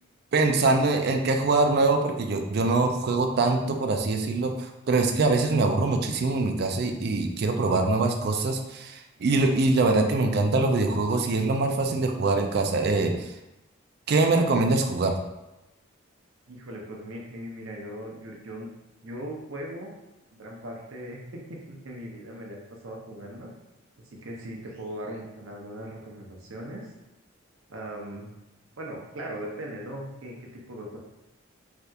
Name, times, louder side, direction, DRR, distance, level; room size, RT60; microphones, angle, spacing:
voice 1, 0.3-13.3 14.1-15.1, right 3 dB, 50° right, 4 dB, 0.4 m, -23 dB
voice 2, 16.5-18.7 19.0-19.9 20.4-23.5 24.0-26.9 27.7-28.3 28.8-30.4 30.7-31.0, right 1 dB, 85° right, -1 dB, 0.7 m, -39 dB
3.3 x 2.8 x 2.4 m, 0.98 s
head